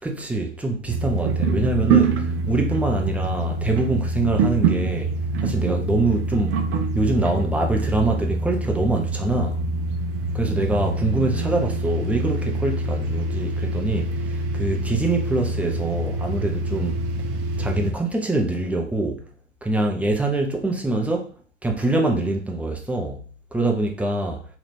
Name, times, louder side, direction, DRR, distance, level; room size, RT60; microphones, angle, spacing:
voice 1, 0.0-5.1 5.4-6.6 6.9-9.6 10.3-17.0 17.6-19.2 19.6-21.3 21.6-24.5, right 2 dB, 5° right, 0.5 m, -24 dB
sound 1, 0.9-17.9, right 3 dB, 40° right, 0.8 m, -25 dB
3.2 x 2.9 x 4.1 m
hypercardioid pair, 100°, 36 cm